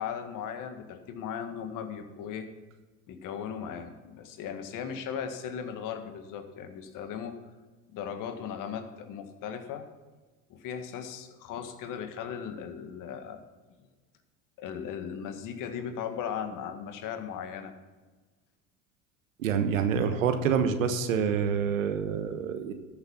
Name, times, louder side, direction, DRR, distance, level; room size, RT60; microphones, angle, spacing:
voice 1, 0.0-2.5 3.1-7.4 7.9-9.8 10.5-13.4 14.6-17.7, left 8 dB, 55° left, 7 dB, 1.8 m, -37 dB
voice 2, 19.4-22.7, right 7 dB, 85° right, 8 dB, 1.3 m, -27 dB
13.5 x 7.3 x 5.8 m, 1.3 s
hypercardioid pair, 75°, 38 cm